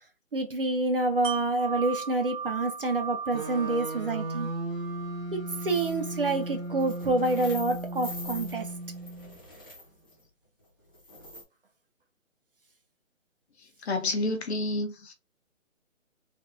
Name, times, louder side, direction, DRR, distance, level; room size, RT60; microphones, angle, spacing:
voice 1, 0.3-4.5 5.3-8.7, right 2 dB, 45° right, 0.4 m, -28 dB
Wind chime, 1.2-7.0 7.4-7.6, right 7 dB, 65° right, 1.4 m, -39 dB
sound 1, 3.3-9.4, right 1 dB, 85° right, 1.5 m, -36 dB
sound 2, 5.7-6.3 6.6-10.2 10.9-11.4, left 1 dB, 20° left, 0.5 m, -44 dB
voice 2, 13.8-15.1, left 2 dB, 55° left, 0.7 m, -29 dB
3.3 x 2.1 x 2.5 m
hypercardioid pair, 160°, 40 cm